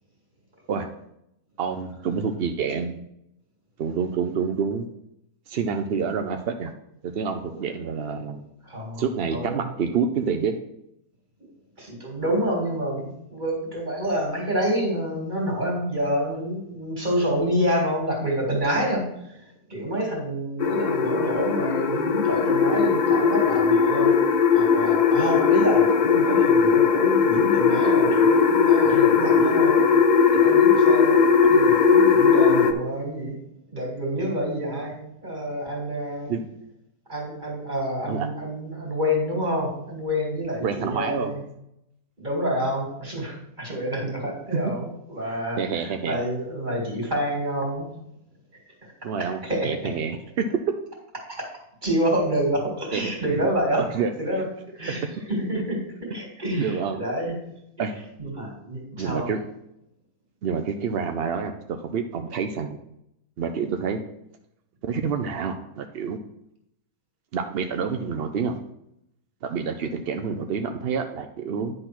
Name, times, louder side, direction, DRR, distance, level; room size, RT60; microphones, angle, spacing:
voice 1, 1.6-3.0 3.8-4.9 5.5-6.7 7.0-8.4 9.0-10.6 36.3-36.4 38.1-38.3 40.6-41.3 45.6-46.2 49.0-50.6 52.9-53.1 53.8-54.1 56.6-57.0 57.8-57.9 59.0-59.4 60.4-62.8 63.4-64.0 64.9-66.2 67.3-68.6 69.5-71.7, right 6 dB, 65° right, 6 dB, 0.6 m, -27 dB
voice 2, 8.0-8.4 8.6-9.7 11.8-29.9 30.3-33.4 33.7-36.3 37.1-41.4 42.2-47.9 48.8-48.9 49.4-49.9 51.4-51.5 51.8-53.9 54.2-54.4 54.7-57.6 58.2-59.3, equal, 30° right, -1 dB, 2.4 m, -28 dB
sound 1, 20.6-32.7, left 6 dB, 80° left, 0.4 m, -18 dB
10.0 x 3.9 x 5.9 m, 0.79 s
omnidirectional pair, 1.6 m